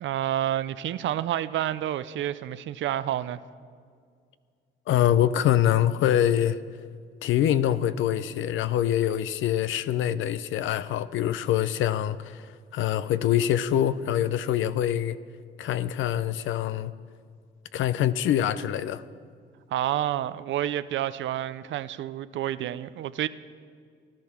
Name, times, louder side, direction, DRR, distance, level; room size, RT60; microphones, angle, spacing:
voice 1, 0.0-3.4 19.7-23.3, right 12 dB, 70° right, 0.5 m, -29 dB
voice 2, 4.9-6.6 7.2-12.4 12.7-15.2 15.6-16.9 17.7-19.0, left 11 dB, 80° left, 0.6 m, -24 dB
16.0 x 11.5 x 6.0 m
cardioid pair, 90°, 20 cm